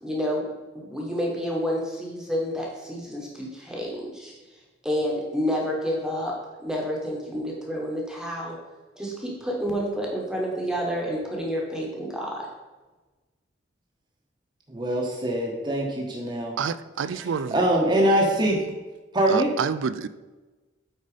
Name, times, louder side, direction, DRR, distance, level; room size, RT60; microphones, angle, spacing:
voice 1, 0.0-4.3 4.8-8.6 8.9-12.5, equal, 5° right, -2 dB, 1.3 m, -29 dB
voice 2, 14.7-16.6 17.1-18.6 19.1-19.5, right 1 dB, 25° right, -2 dB, 1.1 m, -23 dB
voice 3, 16.6-17.6 19.3-20.1, right 6 dB, 85° right, 15 dB, 0.4 m, -28 dB
8.8 x 4.1 x 5.0 m, 1.2 s
head